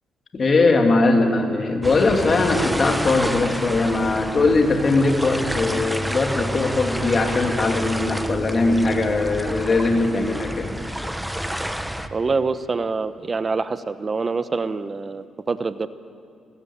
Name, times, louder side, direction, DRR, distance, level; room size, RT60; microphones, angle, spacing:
voice 1, 0.3-10.8, left 3 dB, 40° left, 3 dB, 2.7 m, -20 dB
sound 1, 1.8-12.1, equal, 5° right, 1.0 m, -29 dB
voice 2, 12.1-15.9, right 4 dB, 35° right, 12 dB, 0.9 m, -25 dB
28.0 x 14.0 x 8.7 m, 2.4 s
cardioid pair, 90°, 0 cm